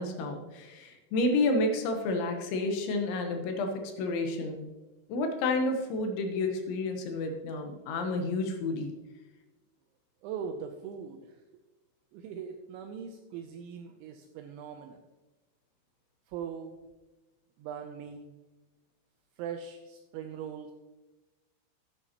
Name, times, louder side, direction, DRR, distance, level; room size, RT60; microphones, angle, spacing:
voice 1, 0.0-4.6 5.1-8.9, left 2 dB, 75° left, 5 dB, 3.0 m, -30 dB
voice 2, 10.2-11.4 12.1-15.0 16.3-16.8 17.6-18.3 19.4-20.7, right 7 dB, 85° right, 4 dB, 2.7 m, -40 dB
13.5 x 8.4 x 2.9 m, 1.1 s
omnidirectional pair, 5.9 m